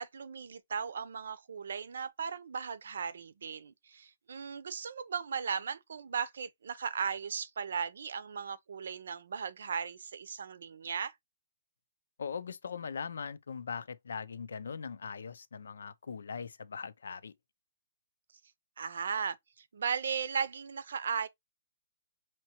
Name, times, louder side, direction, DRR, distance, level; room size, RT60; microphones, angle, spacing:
voice 1, 0.0-11.1 18.8-21.3, right 6 dB, 70° right, 0.7 m, -37 dB
voice 2, 12.2-17.3, left 6 dB, 80° left, 0.5 m, -40 dB
5.8 x 3.0 x 2.9 m
hypercardioid pair, 165°, 0 cm